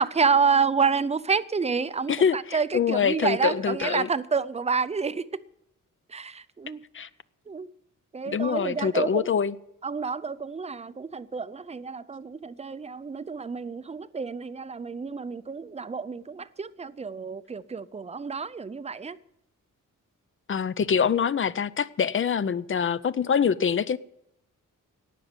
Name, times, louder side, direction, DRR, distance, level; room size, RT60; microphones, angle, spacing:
voice 1, 0.0-5.4 6.1-6.8 7.5-7.7 8.1-9.3 9.8-19.2, right 5 dB, 20° right, 0.5 m, -28 dB
voice 2, 2.7-4.1 6.9-7.1 8.3-9.5 20.5-24.0, left 7 dB, 40° left, 0.5 m, -24 dB
18.0 x 6.3 x 9.7 m
wide cardioid pair, 165°, 32 cm